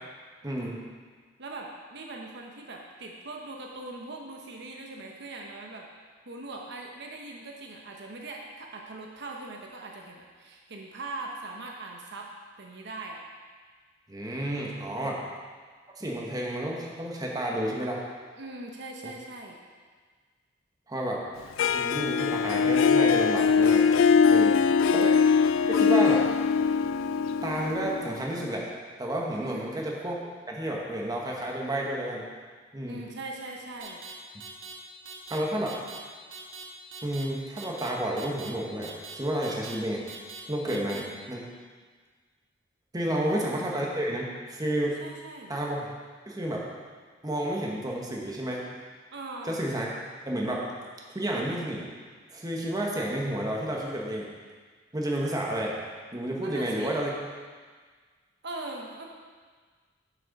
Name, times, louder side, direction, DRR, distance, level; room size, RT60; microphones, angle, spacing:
voice 1, 0.4-0.8 14.1-15.2 16.0-18.0 19.0-19.1 20.9-21.2 21.7-23.9 24.3-24.5 24.9-25.1 25.7-26.3 27.4-28.6 29.0-30.2 30.5-32.3 32.7-33.0 35.3-35.8 37.0-40.0 40.5-41.4 42.9-45.0 45.5-45.9 46.3-46.6 47.2-48.6 49.4-49.9 50.2-50.6 51.1-51.8 52.3-54.3 54.9-55.8 56.1-57.1, right 1 dB, 20° right, -2 dB, 1.2 m, -31 dB
voice 2, 1.4-5.9 6.3-12.3 12.6-13.2 15.0-15.3 18.4-19.6 24.3-25.0 29.4-29.7 32.8-34.0 40.6-41.1 43.1-43.3 45.0-45.5 49.1-49.6 56.4-57.0 58.4-59.1, right 2 dB, 60° right, 0 dB, 0.9 m, -41 dB
Harp, 21.6-28.5, left 6 dB, 80° left, 0.3 m, -22 dB
sound 1, 33.8-34.1 34.4-34.7 35.1-35.4 35.7-36.0 36.3-36.6 36.9-37.2 37.6-37.9 38.2-38.5 38.8-39.1 39.4-39.8 40.1-40.4 40.7-41.0, right 5 dB, 85° right, 1.1 m, -42 dB
7.6 x 6.4 x 5.3 m, 1.6 s
head